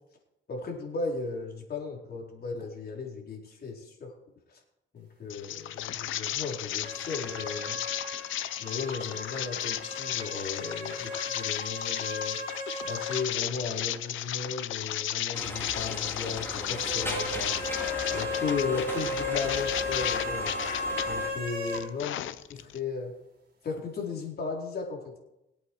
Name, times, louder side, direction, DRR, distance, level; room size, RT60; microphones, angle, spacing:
voice 1, 0.5-4.1 4.5-4.6 4.9-7.8 8.6-12.4 12.9-17.5 18.1-20.6 21.1-22.1 22.6-23.1 23.6-25.1, left 4 dB, 50° left, 0 dB, 4.3 m, -36 dB
sound 1, 5.3-21.1 21.5-22.8, left 12 dB, 80° left, 0.7 m, -34 dB
sound 2, 6.8-13.3 13.6-13.7 16.8-21.9, left 2 dB, 50° right, 4.5 m, -35 dB
sound 3, 15.3-21.3, left 1 dB, 10° left, 4.0 m, -38 dB
22.5 x 8.5 x 4.8 m, 0.88 s
cardioid pair, 90°, 20 cm